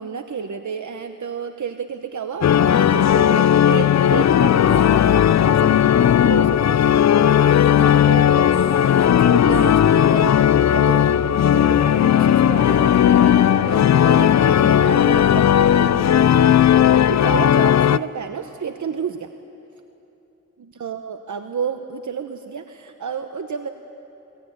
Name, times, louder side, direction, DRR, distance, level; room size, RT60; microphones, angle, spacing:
voice 1, 0.0-19.3 20.7-23.7, right 6 dB, 70° right, 7 dB, 1.0 m, -31 dB
sound 1, 2.4-18.0, left 10 dB, 60° left, 0.5 m, -16 dB
22.0 x 21.0 x 9.3 m, 2.9 s
cardioid pair, 60°, 31 cm